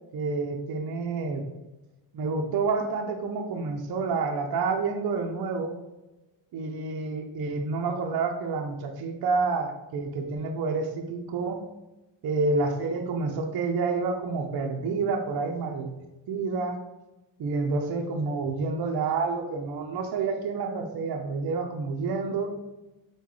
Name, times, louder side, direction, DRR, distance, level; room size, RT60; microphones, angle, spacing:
voice 1, 0.1-1.5 2.1-5.7 6.5-11.6 12.2-15.9 16.3-16.8 17.4-22.5, right 4 dB, 50° right, 3 dB, 0.6 m, -29 dB
3.7 x 2.3 x 3.0 m, 1.0 s
supercardioid pair, 60°, 49 cm